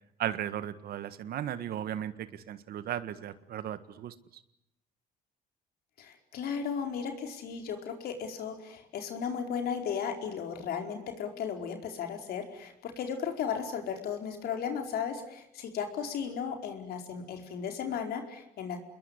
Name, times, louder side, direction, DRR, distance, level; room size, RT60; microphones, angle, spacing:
voice 1, 0.2-4.1, right 10 dB, 65° right, 12 dB, 1.6 m, -36 dB
voice 2, 6.0-18.8, left 7 dB, 70° left, 4 dB, 4.7 m, -35 dB
28.0 x 21.5 x 9.9 m, 0.81 s
cardioid pair, 110°, 17 cm